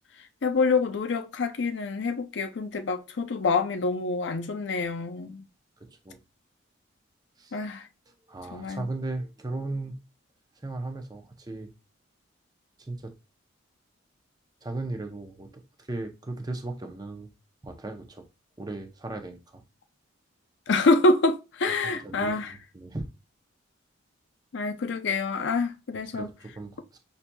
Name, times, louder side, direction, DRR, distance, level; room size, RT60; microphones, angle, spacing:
voice 1, 0.4-5.4 7.5-7.8 8.5-8.8 20.7-22.5 24.5-26.3, left 3 dB, 60° left, 0.5 m, -26 dB
voice 2, 5.8-6.2 7.4-7.6 8.3-10.0 10.6-11.7 12.8-13.1 14.6-17.3 17.6-18.2 18.6-19.6 21.8-23.1 26.1-27.0, right 2 dB, 20° right, 0.6 m, -37 dB
5.7 x 2.6 x 2.2 m
head